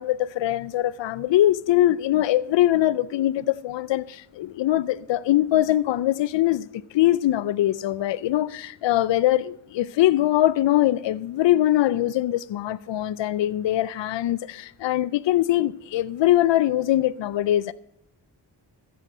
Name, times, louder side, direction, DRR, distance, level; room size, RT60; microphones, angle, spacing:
voice 1, 0.0-6.7 6.9-17.7, left 13 dB, 85° left, 0.5 m, -22 dB
15.0 x 7.8 x 6.5 m
cardioid pair, 45°, 43 cm